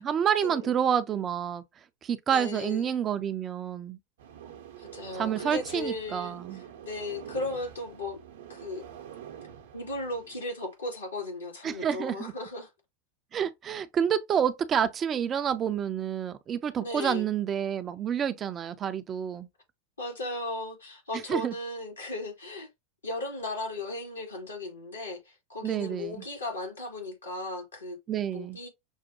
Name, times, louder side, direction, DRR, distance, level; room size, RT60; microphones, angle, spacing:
voice 1, 0.0-1.6 2.0-4.0 5.1-6.6 11.6-12.3 13.3-19.5 21.3-21.5 25.6-26.2 28.1-28.6, right 8 dB, 30° right, 0.5 m, -28 dB
voice 2, 2.3-3.0 4.8-8.2 8.5-8.8 9.7-12.7 16.8-17.3 20.0-22.7 23.0-28.0 28.3-28.7, left 2 dB, 80° left, 2.0 m, -36 dB
sound 1, 4.2-10.6, right 10 dB, 65° right, 0.8 m, -46 dB
6.3 x 2.2 x 2.7 m
figure-of-eight pair, 85°, 0 cm